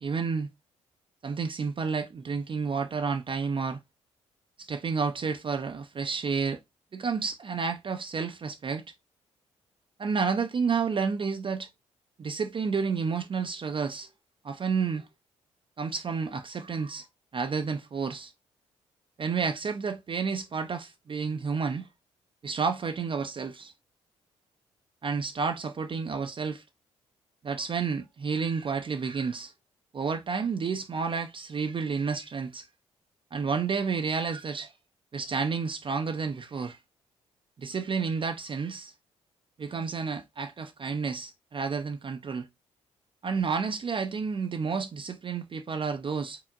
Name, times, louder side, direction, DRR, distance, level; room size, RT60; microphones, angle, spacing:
voice 1, 0.0-0.5 1.2-3.8 4.6-6.6 6.9-8.8 10.0-11.7 12.2-14.1 14.4-15.1 15.8-17.1 17.3-18.3 19.2-21.9 22.4-23.7 25.0-26.6 27.4-29.5 29.9-32.7 33.3-34.7 35.1-36.8 37.6-38.9 39.6-42.5 43.2-46.4, right 5 dB, 35° right, 0.5 m, -30 dB
4.5 x 3.5 x 2.4 m
hypercardioid pair, 45°, 15 cm